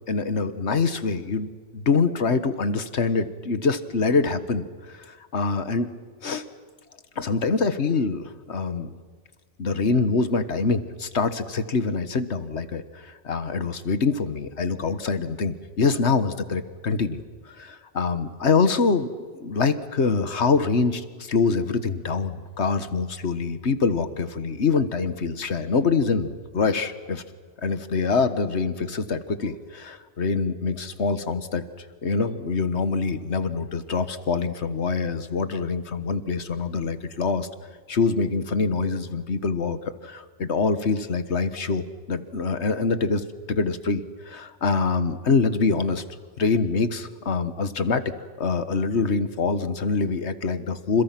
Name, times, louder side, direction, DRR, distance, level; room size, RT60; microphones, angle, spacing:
voice 1, 0.1-4.7 4.9-5.9 6.2-6.4 7.2-8.9 9.6-19.1 19.4-27.2 27.6-31.6 32.0-37.5 37.9-39.8 40.0-46.0 46.4-48.0 48.4-51.0, left 4 dB, 85° left, 11 dB, 1.7 m, -25 dB
29.5 x 28.0 x 6.0 m, 1.5 s
omnidirectional pair, 1.1 m